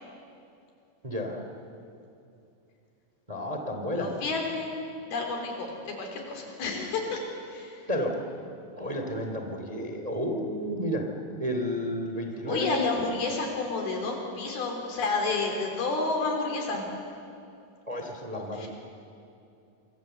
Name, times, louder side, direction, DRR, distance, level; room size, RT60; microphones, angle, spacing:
voice 1, 1.0-1.4 3.3-4.1 7.9-8.1 8.8-11.0 11.4-12.8 17.8-18.7, equal, 10° right, 4 dB, 2.1 m, -31 dB
voice 2, 4.0-4.8 5.1-7.8 12.5-16.9 18.3-18.7, left 3 dB, 90° left, 2 dB, 5.8 m, -30 dB
27.0 x 25.0 x 8.0 m, 2.6 s
omnidirectional pair, 4.2 m